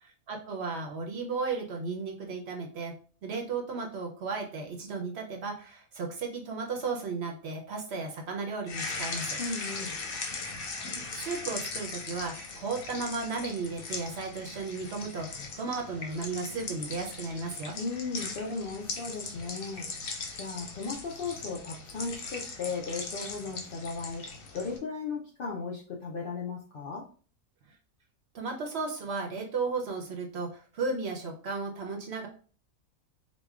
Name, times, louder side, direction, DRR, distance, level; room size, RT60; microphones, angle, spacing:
voice 1, 0.0-2.9 3.2-9.4 10.6-17.8 27.7-27.8 28.3-32.3, right 4 dB, 60° right, 2 dB, 0.8 m, -35 dB
sound 1, 8.7-24.8, left 4 dB, 85° left, 1.2 m, -39 dB
voice 2, 9.4-10.0 17.8-19.9 20.4-24.3 24.5-27.1, left 4 dB, 60° left, -2 dB, 0.6 m, -36 dB
4.9 x 2.2 x 2.4 m, 0.40 s
omnidirectional pair, 1.4 m